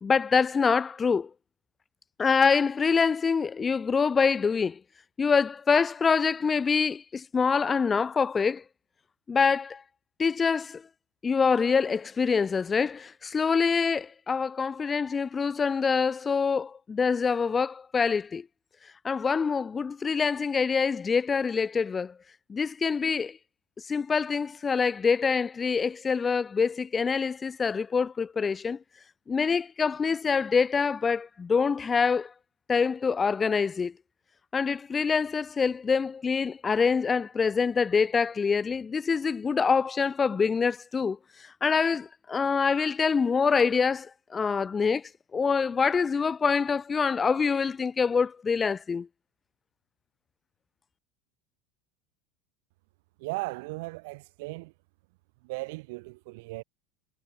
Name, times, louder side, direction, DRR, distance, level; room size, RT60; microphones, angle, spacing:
voice 1, 0.0-1.3 2.2-4.8 5.2-8.6 9.3-9.8 10.2-10.8 11.2-18.4 19.0-22.1 22.5-23.4 23.9-28.8 29.3-32.3 32.7-33.9 34.5-41.2 41.6-45.0 45.3-49.1, left 5 dB, 25° left, 1.5 m, -25 dB
voice 2, 53.2-54.7 55.4-56.6, right 24 dB, 70° right, 7.3 m, -37 dB
supercardioid pair, 105°, 0 cm